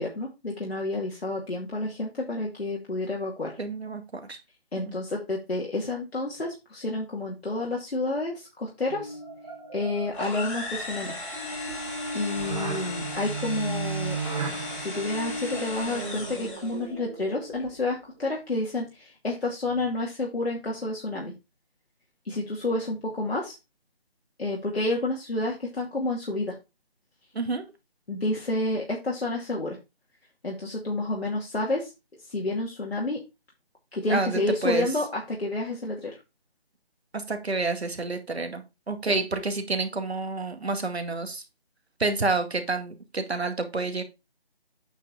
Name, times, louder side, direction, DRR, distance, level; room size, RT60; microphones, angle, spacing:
voice 1, 0.0-3.6 4.7-9.2 9.7-11.2 11.7-11.8 12.1-14.2 14.7-21.3 22.3-23.6 24.4-26.5 28.1-29.8 30.4-31.9 32.3-33.2 33.9-36.1, left 2 dB, 75° left, -3 dB, 2.6 m, -29 dB
voice 2, 3.6-4.4 4.8-4.9 27.4-27.6 34.1-34.9 37.1-41.4 42.0-44.0, right 3 dB, 85° right, 7 dB, 2.0 m, -29 dB
sound 1, 8.9-18.0, right 3 dB, 35° right, 1.8 m, -35 dB
sound 2, 10.1-16.8, left 2 dB, 30° left, 3.6 m, -37 dB
9.0 x 4.9 x 4.1 m, 0.25 s
figure-of-eight pair, 170°, 31 cm